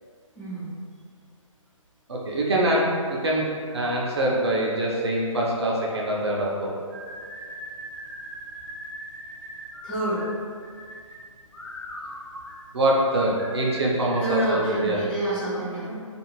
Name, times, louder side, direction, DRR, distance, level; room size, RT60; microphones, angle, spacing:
voice 1, 0.4-0.7 9.8-10.2 14.2-16.0, right 1 dB, 10° left, -11 dB, 0.6 m, -28 dB
voice 2, 2.1-2.9 3.2-3.5 3.7-6.7 12.7-15.0, right 1 dB, 50° right, -3 dB, 0.5 m, -24 dB
sound 1, 6.9-14.9, equal, 45° left, 0.9 m, -40 dB
2.5 x 2.4 x 3.1 m, 2.1 s
figure-of-eight pair, 135°, 17 cm